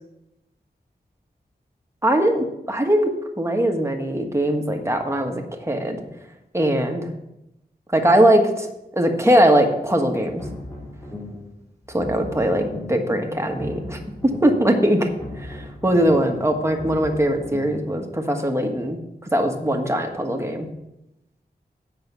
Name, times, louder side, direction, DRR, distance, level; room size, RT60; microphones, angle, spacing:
voice 1, 2.0-3.1 3.4-6.0 6.5-7.1 7.9-8.7 8.9-10.4 11.9-14.0 14.4-15.1 15.4-20.7, right 1 dB, 15° right, 3 dB, 1.4 m, -21 dB
sound 1, 10.2-11.5 11.8-13.1 13.4-14.7 15.0-17.9, left 2 dB, 20° left, 3.4 m, -37 dB
7.9 x 5.9 x 6.7 m, 0.87 s
wide cardioid pair, 80°, 17 cm